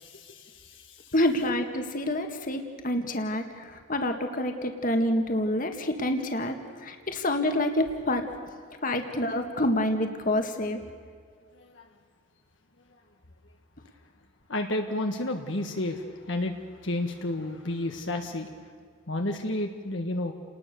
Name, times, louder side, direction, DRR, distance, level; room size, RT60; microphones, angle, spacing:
voice 1, 0.0-1.1 11.5-11.9 14.5-18.5 19.1-20.3, left 1 dB, 60° left, 3 dB, 1.6 m, -31 dB
voice 2, 1.1-8.3 8.8-10.8, left 1 dB, 40° left, 5 dB, 2.0 m, -27 dB
30.0 x 20.0 x 6.9 m, 2.1 s
head